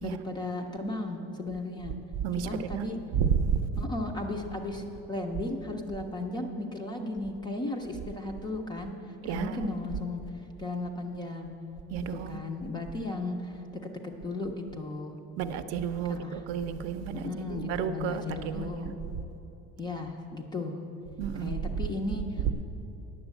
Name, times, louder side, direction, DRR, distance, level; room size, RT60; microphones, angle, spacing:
voice 1, 0.0-2.0 2.3-3.0 3.8-8.9 9.2-10.2 10.6-11.5 12.1-13.9 14.2-15.2 16.1-16.4 17.1-18.9 19.8-20.8 21.4-22.5, left 2 dB, 15° left, 3 dB, 0.3 m, -35 dB
voice 2, 2.2-2.9 3.1-3.6 9.2-9.6 11.9-12.4 15.4-17.2 17.5-18.9 21.2-21.5 22.5-22.6, right 7 dB, 50° right, 10 dB, 0.6 m, -31 dB
9.7 x 7.0 x 8.1 m, 3.0 s
cardioid pair, 175°, 32 cm